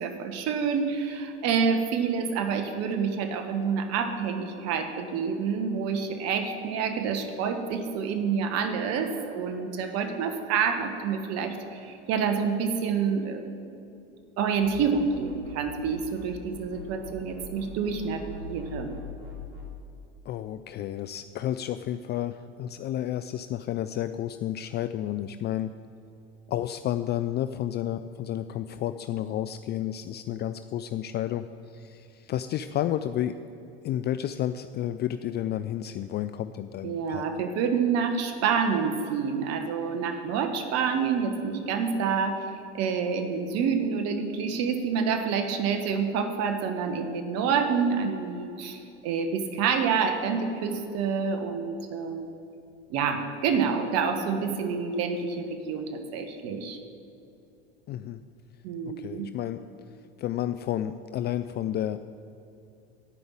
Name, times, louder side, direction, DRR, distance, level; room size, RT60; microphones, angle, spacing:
voice 1, 0.0-13.6 14.4-18.9 36.8-42.5 42.7-52.4 52.9-56.8 58.6-59.3, right 6 dB, 55° right, 6 dB, 1.4 m, -28 dB
sound 1, 14.6-16.3 16.5-19.7, left 2 dB, 75° right, 3.0 m, -43 dB
voice 2, 20.3-25.7 26.5-33.3 33.8-37.4 57.9-58.2 59.0-59.6 60.2-62.0, left 11 dB, 35° left, 11 dB, 0.4 m, -31 dB
11.5 x 5.4 x 8.9 m, 2.6 s
hypercardioid pair, 90°, 31 cm